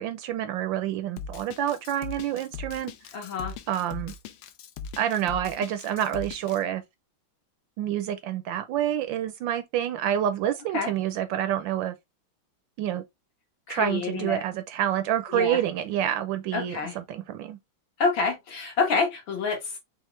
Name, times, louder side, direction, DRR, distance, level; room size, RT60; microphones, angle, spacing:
voice 1, 0.0-2.9 3.7-4.1 5.0-6.8 7.8-11.9 12.8-13.0 13.7-17.6, right 11 dB, 75° right, 1.2 m, -28 dB
Drum kit, 1.2-6.6, left 5 dB, 90° left, 1.5 m, -39 dB
voice 2, 3.1-3.5 10.7-10.9 13.7-14.4 15.3-15.6 16.5-17.0 18.0-19.8, left 4 dB, 65° left, 2.2 m, -27 dB
5.6 x 2.6 x 3.1 m
omnidirectional pair, 2.3 m